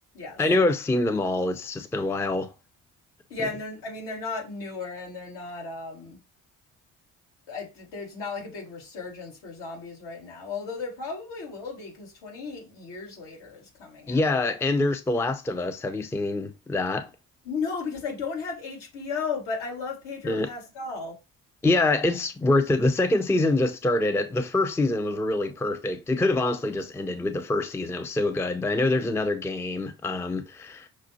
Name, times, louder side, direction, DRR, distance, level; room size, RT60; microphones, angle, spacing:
voice 1, 0.4-2.5 14.1-17.1 20.2-20.5 21.6-30.9, left 2 dB, 5° left, 0.4 m, -25 dB
voice 2, 3.3-6.2 7.5-14.2 17.4-21.2, left 4 dB, 70° left, 2.1 m, -35 dB
5.9 x 2.0 x 2.9 m
hypercardioid pair, 50°, 41 cm